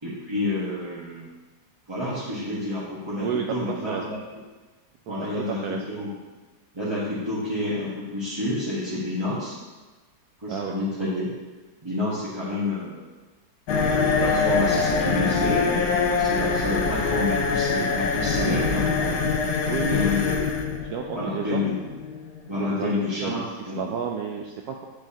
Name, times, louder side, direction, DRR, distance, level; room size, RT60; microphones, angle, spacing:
voice 1, 0.0-1.3 1.9-4.2 5.1-6.1 6.7-9.6 10.4-11.3 11.8-13.0 14.0-19.2 19.7-20.4 21.1-21.8 22.5-23.4 23.7-23.9, left 2 dB, 15° right, -10 dB, 1.2 m, -29 dB
voice 2, 5.5-5.8 10.5-10.7 19.6-20.0 20.8-21.6 22.5-24.9, right 7 dB, 70° right, 2 dB, 1.0 m, -31 dB
sound 1, 13.7-23.3, left 4 dB, 70° left, 1.3 m, -24 dB
8.5 x 6.3 x 2.8 m, 1.3 s
omnidirectional pair, 2.0 m